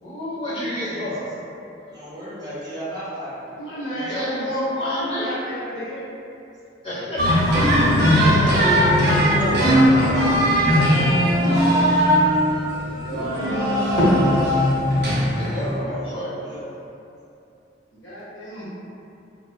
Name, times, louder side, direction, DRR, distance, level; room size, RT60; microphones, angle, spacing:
voice 1, 0.0-1.3 4.0-4.4 4.7-5.3 6.8-10.2 15.3-16.5, left 1 dB, 30° left, -10 dB, 0.7 m, -28 dB
voice 2, 1.9-3.3 3.7-4.3 15.8-16.7, right 1 dB, 20° right, -11 dB, 0.8 m, -36 dB
voice 3, 3.6-6.0 13.0-14.3 15.4-15.5 18.0-18.7, equal, 85° left, -9 dB, 0.9 m, -27 dB
sound 1, 7.2-15.8, equal, 60° right, 0.5 m, -19 dB
2.7 x 2.0 x 2.2 m, 2.6 s
head